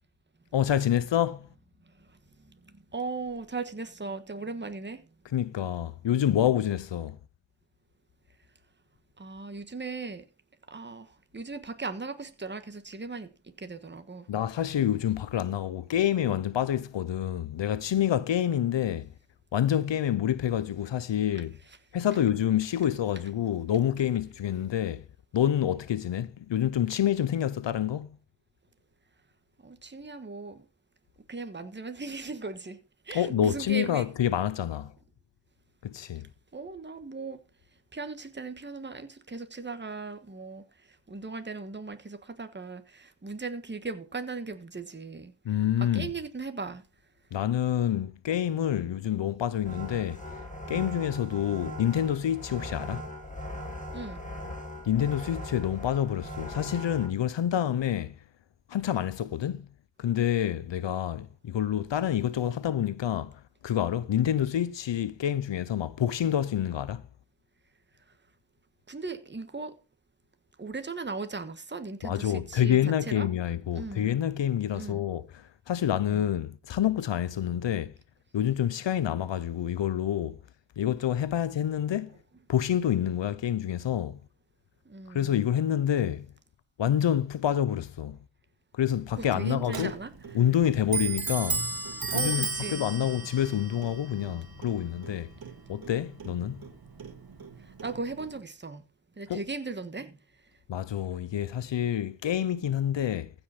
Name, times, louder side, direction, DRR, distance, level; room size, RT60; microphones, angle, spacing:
voice 1, 0.5-1.5 5.3-7.2 14.3-19.1 19.5-21.6 21.9-25.0 25.3-28.2 33.1-34.9 35.8-36.3 45.4-46.1 47.3-50.2 50.7-53.0 54.8-58.1 58.7-59.7 60.0-67.0 72.0-77.9 78.3-80.4 80.8-82.1 82.5-84.2 85.1-86.3 86.8-88.2 88.7-89.9 90.3-91.6 92.1-95.3 95.7-96.6 99.3-99.4 100.7-103.3, left 10 dB, 85° left, 0.7 m, -27 dB
voice 2, 2.4-5.0 9.2-10.3 10.7-14.3 29.6-30.6 31.3-32.8 33.0-34.1 36.5-37.4 37.9-45.3 45.8-46.8 53.9-54.2 68.9-69.8 70.6-73.3 73.7-74.1 74.7-75.0 76.1-76.3 84.8-85.3 89.2-90.1 92.1-92.8 97.6-98.8 99.2-100.2, right 4 dB, 25° right, 1.4 m, -38 dB
sound 1, 49.7-57.1, left 1 dB, 15° left, 3.5 m, -39 dB
Clock, 89.1-98.4, right 4 dB, 55° right, 1.9 m, -36 dB
15.0 x 5.4 x 5.8 m
wide cardioid pair, 80°, 43 cm